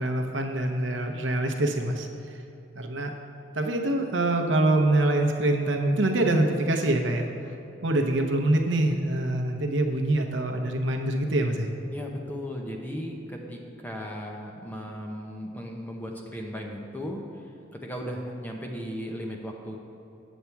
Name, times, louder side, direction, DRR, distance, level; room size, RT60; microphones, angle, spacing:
voice 1, 0.0-2.4 2.7-3.1 3.5-7.5 7.8-11.7, right 1 dB, 65° right, 3 dB, 0.8 m, -25 dB
voice 2, 11.9-19.8, equal, 10° left, 1 dB, 0.7 m, -36 dB
8.3 x 7.1 x 4.6 m, 3.0 s
head